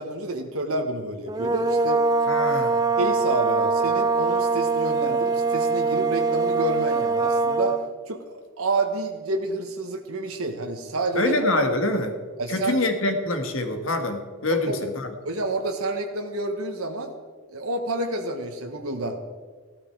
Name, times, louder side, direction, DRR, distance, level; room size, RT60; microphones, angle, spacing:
voice 1, 0.0-2.0 3.0-7.8 8.1-11.3 12.4-12.8 14.5-14.9 15.2-17.1 17.5-19.2, right 2 dB, 85° right, 4 dB, 1.3 m, -29 dB
sound 1, 1.3-7.9, right 4 dB, 15° right, 0.4 m, -23 dB
voice 2, 2.3-2.8 11.2-12.2 12.5-15.1, left 2 dB, 70° left, 6 dB, 1.6 m, -25 dB
15.0 x 12.5 x 4.6 m, 1.5 s
head